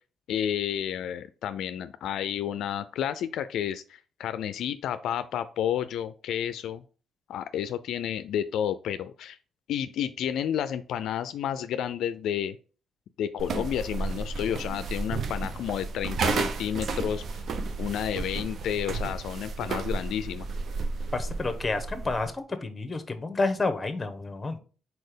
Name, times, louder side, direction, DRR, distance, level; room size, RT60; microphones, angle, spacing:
voice 1, 0.3-6.8 7.3-9.4 9.7-12.6 13.2-17.4 17.8-20.5, left 10 dB, 80° left, 12 dB, 0.4 m, -31 dB
sound 1, 13.4-22.3, right 4 dB, 55° right, 0.8 m, -32 dB
voice 2, 21.1-24.6, left 3 dB, 25° left, 8 dB, 1.0 m, -30 dB
4.3 x 4.3 x 5.1 m, 0.38 s
cardioid pair, 90°, 0 cm